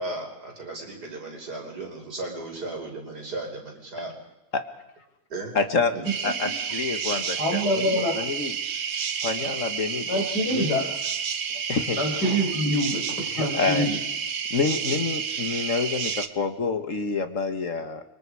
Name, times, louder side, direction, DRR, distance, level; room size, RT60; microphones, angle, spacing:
voice 1, 0.0-4.2 5.3-5.5 5.9-6.1, right 2 dB, 75° right, 1 dB, 5.8 m, -35 dB
voice 2, 5.6-5.9 6.2-8.6 9.2-10.8 11.7-12.0 13.3-13.9 14.5-18.0, left 4 dB, 50° left, 8 dB, 1.9 m, -28 dB
sound 1, 6.1-16.3, right 7 dB, 55° right, 1.3 m, -30 dB
voice 3, 7.4-8.1 10.1-10.9 12.0-13.0 13.4-14.0, equal, 85° left, 2 dB, 5.5 m, -25 dB
29.5 x 25.0 x 4.9 m, 0.91 s
omnidirectional pair, 1.7 m